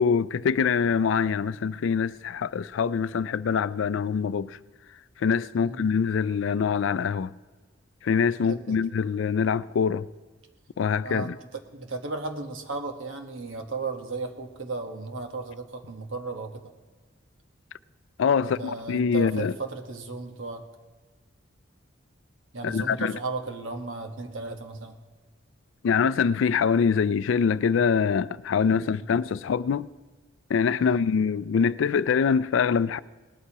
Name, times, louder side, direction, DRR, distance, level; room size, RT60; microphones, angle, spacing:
voice 1, 0.0-4.6 5.2-7.3 8.0-10.1 10.8-11.3 18.2-19.5 22.6-23.2 25.8-29.9 30.5-33.0, left 6 dB, 75° left, 0.3 m, -24 dB
voice 2, 11.0-16.7 18.4-20.6 22.5-25.0 28.7-29.0 30.8-31.1, right 3 dB, 85° right, 1.2 m, -35 dB
19.5 x 13.0 x 2.9 m
head